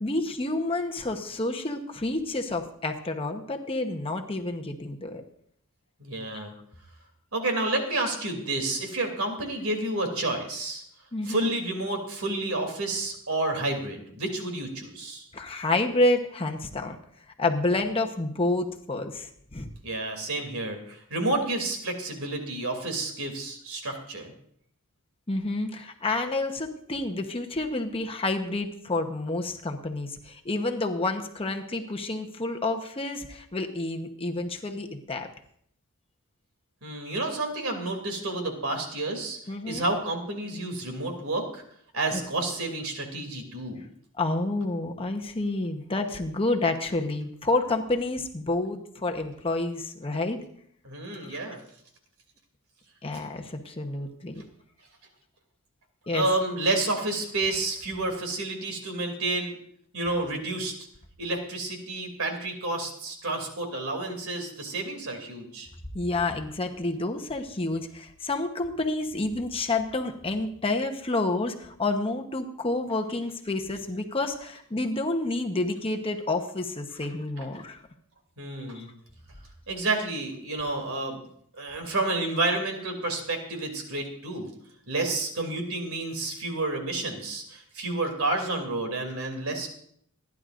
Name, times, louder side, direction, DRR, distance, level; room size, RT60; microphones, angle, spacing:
voice 1, 0.0-5.2 11.1-11.5 15.3-17.0 17.4-19.7 25.3-35.3 39.5-39.9 42.1-42.2 44.2-50.4 51.2-51.4 53.0-54.4 56.1-56.3 65.9-77.8 78.7-78.9, left 2 dB, 25° left, 3 dB, 1.0 m, -29 dB
voice 2, 6.0-6.5 7.3-10.8 11.2-15.3 19.8-24.3 36.8-39.4 39.7-41.6 41.9-43.8 50.8-51.6 56.1-59.6 59.9-60.7 61.2-65.7 78.4-78.9 79.7-81.2 81.6-84.5 84.9-89.7, right 2 dB, 70° right, 4 dB, 2.8 m, -30 dB
27.5 x 11.0 x 2.6 m, 0.64 s
head